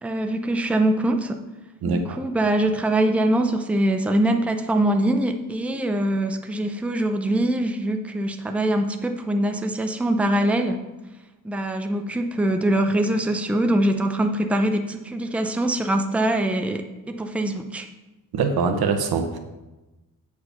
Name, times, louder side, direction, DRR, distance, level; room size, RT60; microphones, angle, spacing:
voice 1, 0.0-1.4 1.8-10.8 11.4-17.8, right 1 dB, 5° right, 5 dB, 0.5 m, -23 dB
voice 2, 1.8-2.2 18.3-19.4, right 4 dB, 85° right, 7 dB, 1.0 m, -23 dB
8.4 x 4.8 x 5.7 m, 1.1 s
wide cardioid pair, 120°, 37 cm